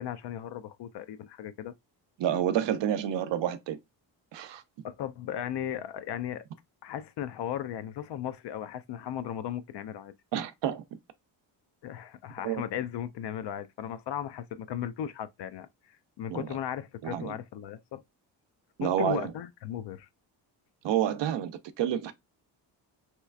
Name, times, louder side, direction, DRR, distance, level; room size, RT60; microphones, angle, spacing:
voice 1, 0.0-1.7 4.8-6.4 6.8-10.1 11.8-15.7 16.2-18.0 18.8-20.1, left 10 dB, 65° left, 0.5 m, -36 dB
voice 2, 2.2-3.8 4.3-4.6 10.3-10.8 12.4-12.6 16.3-16.6 17.0-17.3 18.8-19.3 20.8-22.1, right 10 dB, 70° right, 0.7 m, -29 dB
3.1 x 3.0 x 2.3 m
cardioid pair, 110°, 44 cm